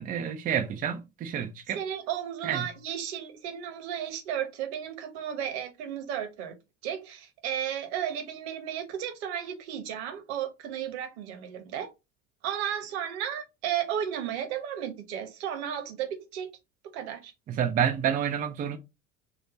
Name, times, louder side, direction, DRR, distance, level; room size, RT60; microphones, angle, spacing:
voice 1, 0.0-1.8 2.4-2.7 17.5-18.8, right 8 dB, 20° right, 0.5 m, -29 dB
voice 2, 1.7-6.5 6.8-11.9 12.4-16.5 16.9-17.3, right 9 dB, 55° right, 1.1 m, -34 dB
4.5 x 2.3 x 4.0 m
figure-of-eight pair, 65°, 39 cm